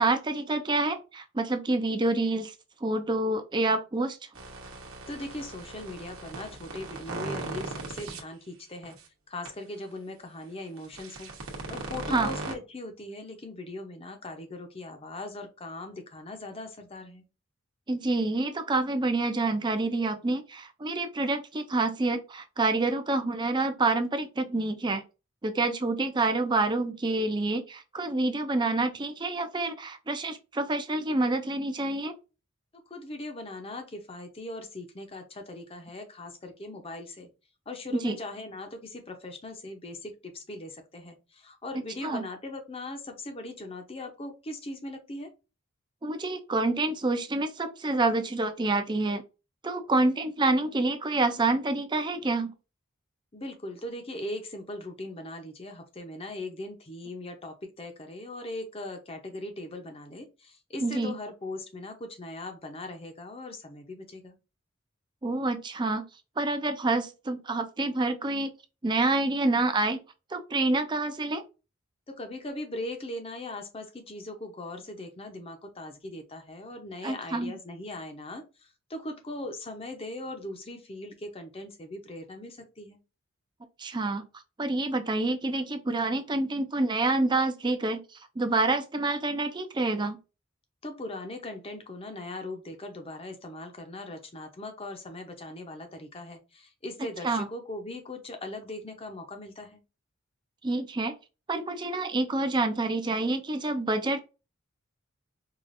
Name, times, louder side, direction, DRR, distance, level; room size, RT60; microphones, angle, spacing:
voice 1, 0.0-2.5 2.8-4.2 12.1-12.3 17.9-25.0 25.4-32.2 37.9-38.2 42.0-42.2 46.0-49.2 49.6-52.5 60.8-61.2 65.2-66.1 66.4-68.5 68.8-70.0 70.3-71.4 77.0-77.6 83.8-84.2 84.6-88.0 88.4-90.2 97.2-97.5 100.6-101.1 101.5-104.2, right 2 dB, 20° right, 8 dB, 0.4 m, -27 dB
sound 1, 4.3-8.2 8.8-9.0 9.4-9.5 10.8-12.5, right 3 dB, 85° right, 1.0 m, -38 dB
voice 2, 5.1-9.0 9.3-17.2 32.9-37.3 37.7-45.3 53.3-64.3 72.1-83.0 90.8-99.8, left 1 dB, 25° left, 5 dB, 0.7 m, -40 dB
4.8 x 2.4 x 2.5 m, 0.30 s
head